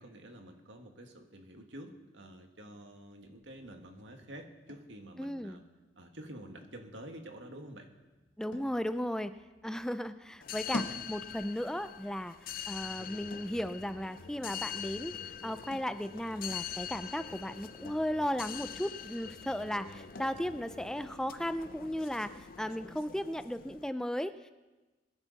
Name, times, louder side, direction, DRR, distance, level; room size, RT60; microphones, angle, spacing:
voice 1, 0.0-5.6 6.0-7.9, right 1 dB, 90° right, 4 dB, 1.8 m, -49 dB
sound 1, 3.2-22.8, left 1 dB, 85° left, 1.4 m, -51 dB
voice 2, 5.2-5.6 8.4-9.3 9.6-12.4 12.7-15.1 15.4-24.4, equal, 5° left, 11 dB, 0.4 m, -35 dB
sound 2, 10.4-23.9, left 8 dB, 50° left, 0.6 m, -44 dB
22.5 x 10.5 x 4.1 m, 1.2 s
head